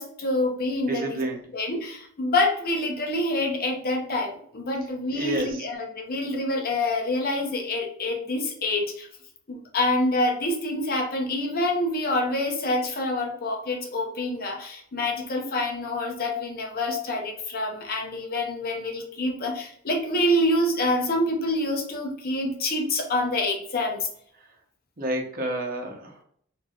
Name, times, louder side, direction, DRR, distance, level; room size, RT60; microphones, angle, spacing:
voice 1, 0.0-1.2 1.5-9.1 9.5-24.1, left 1 dB, 45° left, 1 dB, 0.8 m, -26 dB
voice 2, 0.8-1.5 4.8-5.6 24.3-24.5 25.0-26.2, right 1 dB, 45° right, 1 dB, 0.9 m, -30 dB
4.6 x 2.7 x 2.4 m, 0.63 s
head